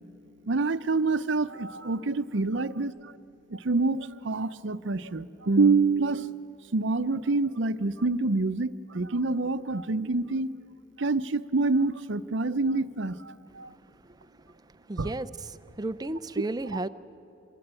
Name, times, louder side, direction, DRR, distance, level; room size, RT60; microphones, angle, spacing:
voice 1, 0.5-3.1 3.5-10.5 11.0-13.7 15.0-15.1, right 3 dB, 65° right, 12 dB, 0.7 m, -27 dB
voice 2, 14.9-15.3 15.8-16.9, right 2 dB, 20° right, 13 dB, 0.5 m, -32 dB
26.0 x 23.0 x 9.0 m, 2.8 s
head